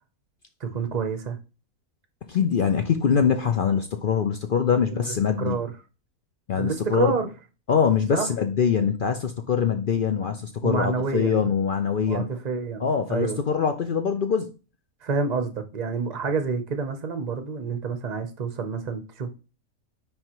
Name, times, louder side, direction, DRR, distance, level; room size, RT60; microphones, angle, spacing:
voice 1, 0.6-1.4 4.8-5.0 5.4-5.7 6.6-7.3 8.1-8.3 10.6-11.5 12.0-13.4 15.0-19.3, right 5 dB, 40° right, 0.7 m, -28 dB
voice 2, 2.3-5.6 6.5-7.1 7.7-12.2 12.8-14.5, left 7 dB, 60° left, 0.5 m, -23 dB
9.6 x 3.5 x 3.0 m
omnidirectional pair, 1.5 m